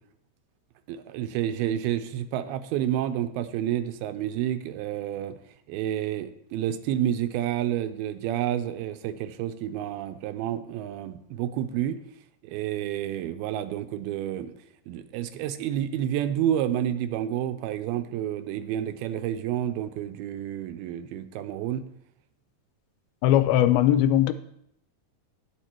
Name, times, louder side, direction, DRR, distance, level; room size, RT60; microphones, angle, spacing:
voice 1, 0.9-5.3 5.7-12.0 12.4-14.5 14.9-21.9, right 11 dB, 85° right, 11 dB, 2.5 m, -29 dB
voice 2, 23.2-24.3, left 12 dB, 80° left, 13 dB, 2.3 m, -19 dB
9.4 x 9.1 x 4.4 m, 0.72 s
omnidirectional pair, 4.4 m